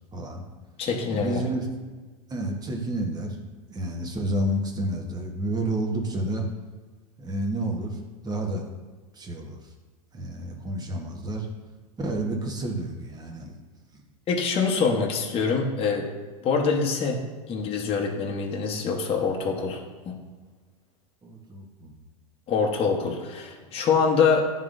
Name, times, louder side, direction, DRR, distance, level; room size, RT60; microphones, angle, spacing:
voice 1, 0.1-0.4 1.1-1.7 2.3-3.4 3.7-6.4 7.2-8.6 9.1-9.6 10.1-11.5 12.0-13.6 21.2-21.9, right 1 dB, 20° right, 1 dB, 1.1 m, -30 dB
voice 2, 0.8-1.4 14.3-16.1 16.4-17.2 17.5-20.1 22.5-24.4, left 5 dB, 30° left, 0 dB, 0.9 m, -25 dB
10.5 x 3.7 x 2.5 m, 1.4 s
hypercardioid pair, 115°, 19 cm